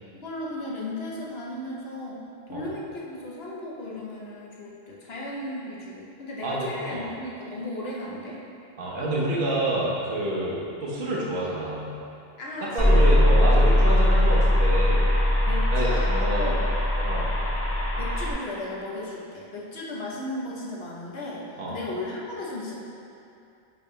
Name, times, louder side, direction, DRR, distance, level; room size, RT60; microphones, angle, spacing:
voice 1, 0.2-8.4 12.4-13.1 15.5-16.6 18.0-22.7, left 1 dB, 65° left, -4 dB, 1.2 m, -35 dB
voice 2, 6.4-7.1 8.8-11.8 12.7-15.1 15.7-16.5 17.0-17.3 21.6-21.8, right 1 dB, 50° right, -6 dB, 1.2 m, -28 dB
sound 1, 12.8-18.3, left 1 dB, 20° left, 0.4 m, -20 dB
9.6 x 3.4 x 3.3 m, 2.6 s
omnidirectional pair, 1.1 m